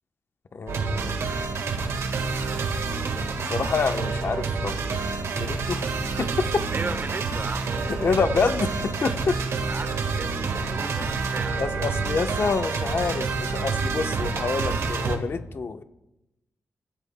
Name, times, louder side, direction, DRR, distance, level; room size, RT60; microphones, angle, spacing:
voice 1, 0.5-1.2 3.5-5.9 6.2-6.7 7.9-9.4 11.6-15.8, left 5 dB, 55° left, 8 dB, 0.9 m, -27 dB
sound 1, 0.7-15.2, right 4 dB, 90° right, 1.6 m, -28 dB
voice 2, 6.7-7.7 8.2-8.3 9.7-10.3 10.7-11.6, right 4 dB, 45° right, 9 dB, 1.2 m, -35 dB
23.0 x 14.5 x 2.2 m, 0.92 s
cardioid pair, 90°, 5 cm